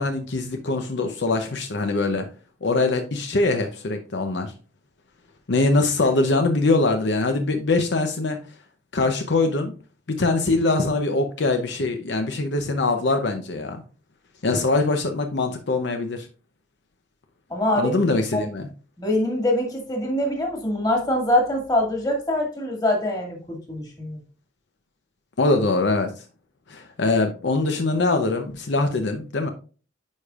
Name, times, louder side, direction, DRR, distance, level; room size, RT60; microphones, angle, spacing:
voice 1, 0.0-2.3 2.6-4.5 5.5-8.4 8.9-9.7 10.1-13.8 14.4-16.3 17.8-18.7 25.4-26.1 26.7-29.5, left 3 dB, 70° left, 6 dB, 0.7 m, -23 dB
voice 2, 17.5-17.9 18.3-18.4 19.0-24.2, left 1 dB, 20° left, 1 dB, 2.0 m, -24 dB
9.6 x 5.0 x 2.4 m, 0.37 s
head